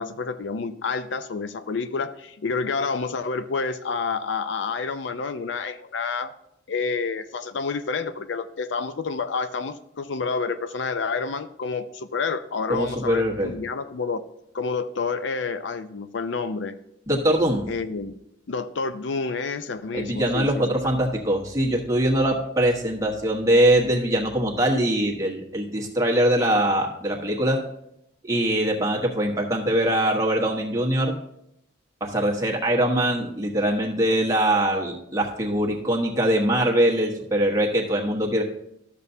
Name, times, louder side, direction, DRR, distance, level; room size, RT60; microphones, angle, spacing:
voice 1, 0.0-6.3 6.7-14.2 14.5-16.7 17.7-18.2 18.5-20.6, left 4 dB, 65° left, 11 dB, 0.5 m, -29 dB
voice 2, 12.7-13.5 17.1-17.6 19.9-27.6 28.3-31.1 32.0-38.4, right 1 dB, 15° right, -1 dB, 1.3 m, -22 dB
12.5 x 6.8 x 2.7 m, 0.80 s
head